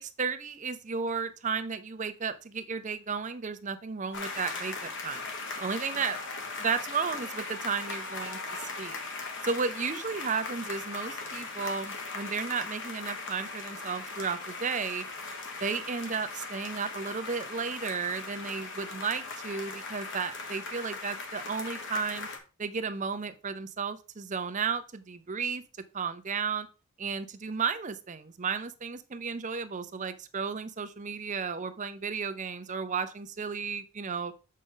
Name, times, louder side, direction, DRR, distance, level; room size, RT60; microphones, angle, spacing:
voice 1, 0.0-5.2 5.6-6.2 6.6-9.0 9.4-15.1 15.6-22.3 22.6-25.6 25.9-26.7 27.0-34.3, right 5 dB, 35° right, 11 dB, 0.6 m, -33 dB
sound 1, 4.1-22.4, left 3 dB, 55° left, 1.4 m, -39 dB
7.4 x 5.2 x 3.8 m, 0.32 s
head